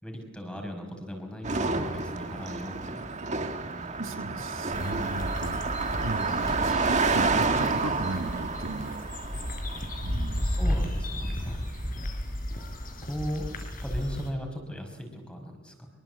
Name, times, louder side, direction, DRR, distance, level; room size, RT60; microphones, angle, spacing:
voice 1, 0.0-3.0 3.6-4.0 10.4-11.6 13.0-13.5 13.8-15.9, equal, 5° left, 4 dB, 5.5 m, -37 dB
Car passing by, 1.4-11.0, right 4 dB, 35° right, 1.9 m, -30 dB
voice 2, 4.0-9.0 10.0-10.5, right 2 dB, 75° right, 7 dB, 1.7 m, -36 dB
sound 1, 4.7-14.3, equal, 45° left, 4.8 m, -33 dB
25.0 x 23.5 x 8.1 m, 1.1 s
head